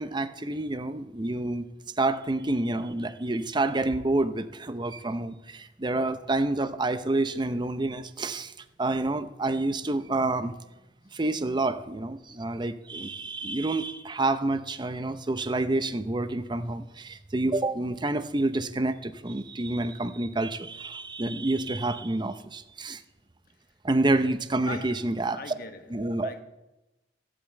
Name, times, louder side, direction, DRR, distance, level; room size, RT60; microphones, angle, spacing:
voice 1, 0.0-1.7 2.0-8.5 8.8-10.6 11.1-23.0 23.8-25.5 25.9-26.3, right 2 dB, 25° right, 0.7 m, -28 dB
voice 2, 24.6-25.1 25.3-25.8 26.2-26.4, left 3 dB, 55° left, 1.2 m, -39 dB
15.5 x 8.7 x 7.7 m
head